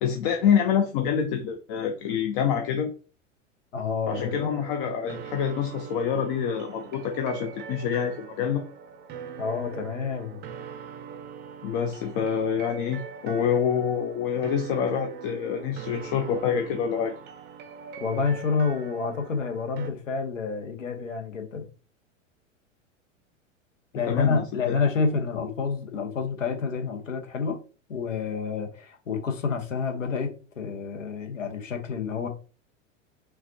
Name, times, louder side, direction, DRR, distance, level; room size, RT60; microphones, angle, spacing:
voice 1, 0.0-2.9 4.1-8.6 11.6-17.1 24.1-24.7, left 7 dB, 45° left, 0.7 m, -26 dB
voice 2, 3.7-4.6 9.4-10.4 18.0-21.6 23.9-27.6 27.9-32.3, left 5 dB, 80° left, 1.1 m, -28 dB
sound 1, 4.1-19.9, right 7 dB, 30° right, 0.6 m, -42 dB
5.7 x 2.4 x 2.7 m
figure-of-eight pair, 90°, 38 cm